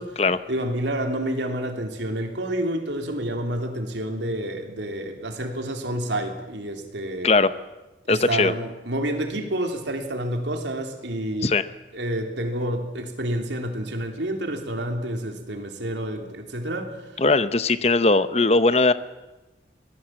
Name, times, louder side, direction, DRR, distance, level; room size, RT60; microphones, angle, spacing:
voice 1, 0.5-7.3 8.0-11.5 11.9-17.2, right 1 dB, 80° right, 4 dB, 3.3 m, -29 dB
voice 2, 8.1-8.5 11.4-11.7 17.2-18.9, left 3 dB, 35° left, 13 dB, 0.8 m, -19 dB
24.0 x 18.5 x 7.7 m, 1.1 s
head